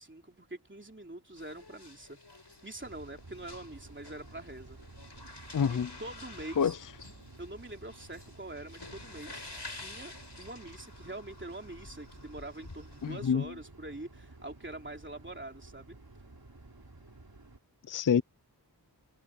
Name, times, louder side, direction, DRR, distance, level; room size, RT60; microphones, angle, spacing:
voice 1, 0.0-2.2 2.6-4.8 5.1-5.2 5.7-6.7 7.4-9.4 9.8-16.0, right 1 dB, 30° right, 3.1 m, -44 dB
sound 1, 1.4-13.3, left 2 dB, 75° left, 7.3 m, -50 dB
sound 2, 2.8-17.6, right 2 dB, 60° right, 3.4 m, -53 dB
voice 2, 5.5-5.9 6.6-6.8 13.0-13.5 17.9-18.2, left 7 dB, 50° left, 0.5 m, -27 dB
wide cardioid pair, 45°, 41 cm